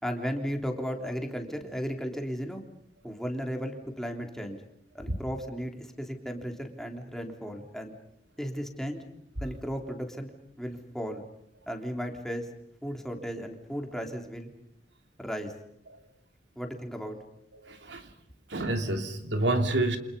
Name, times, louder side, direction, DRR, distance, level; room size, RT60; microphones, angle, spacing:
voice 1, 0.0-2.6 3.0-4.6 4.9-7.9 8.4-9.0 9.4-10.3 10.6-11.3 11.7-12.5 12.8-14.5 15.2-15.5 16.5-17.2, equal, ahead, 3 dB, 3.4 m, -35 dB
voice 2, 17.6-18.1 18.5-20.0, right 2 dB, 85° right, 6 dB, 3.0 m, -28 dB
30.0 x 27.5 x 5.5 m, 0.73 s
head